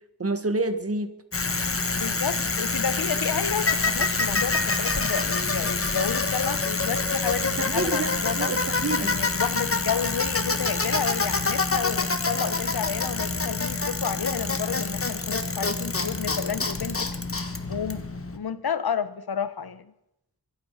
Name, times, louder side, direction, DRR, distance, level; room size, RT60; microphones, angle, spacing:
voice 1, 0.2-1.1 7.6-9.2, right 3 dB, 40° right, 10 dB, 1.5 m, -28 dB
Bicycle, 1.3-18.4, left 3 dB, 35° left, 1.4 m, -26 dB
voice 2, 1.9-8.5 9.0-17.1 17.7-19.9, left 7 dB, 75° left, 13 dB, 1.1 m, -31 dB
24.0 x 8.8 x 5.8 m, 0.84 s
wide cardioid pair, 95°, 37 cm